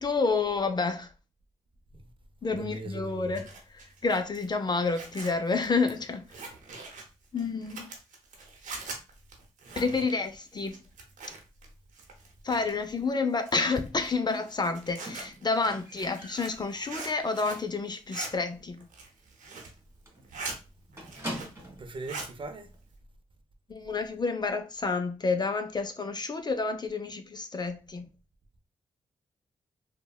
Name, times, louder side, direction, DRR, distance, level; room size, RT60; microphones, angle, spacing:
voice 1, 0.0-1.1 2.4-3.5 4.0-6.3 7.3-7.9 9.8-10.8 12.4-18.9 23.7-28.1, left 4 dB, 35° left, 0.4 m, -29 dB
voice 2, 2.5-3.3 21.2-21.3 21.8-22.7, right 2 dB, 40° right, 0.6 m, -40 dB
Zipper (clothing), 3.1-11.7 11.9-12.9 13.4-17.7 17.9-18.3 18.8-19.8 20.1-20.6 20.9-21.6 21.9-22.3, right 4 dB, 75° right, 0.8 m, -43 dB
Squeak, 15.1-17.8 18.2-18.6 18.8-18.9 19.3-19.4 19.7-19.8 20.1-21.9 22.7-22.8, equal, 20° right, 1.5 m, -43 dB
3.2 x 2.1 x 2.3 m
supercardioid pair, 45°, 13 cm